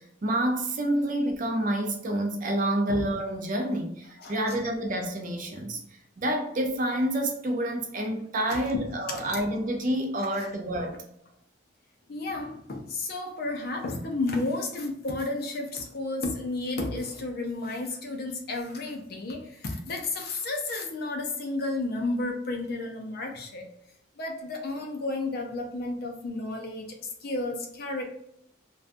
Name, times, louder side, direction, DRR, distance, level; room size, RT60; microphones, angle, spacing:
voice 1, 0.0-5.8 6.2-11.0, right 1 dB, 40° right, 3 dB, 0.4 m, -28 dB
voice 2, 4.2-4.6 8.8-9.4 10.3-10.5 12.1-23.7 24.2-27.0 27.2-28.0, left 2 dB, 50° left, 3 dB, 0.5 m, -32 dB
2.5 x 2.2 x 2.5 m, 0.71 s
head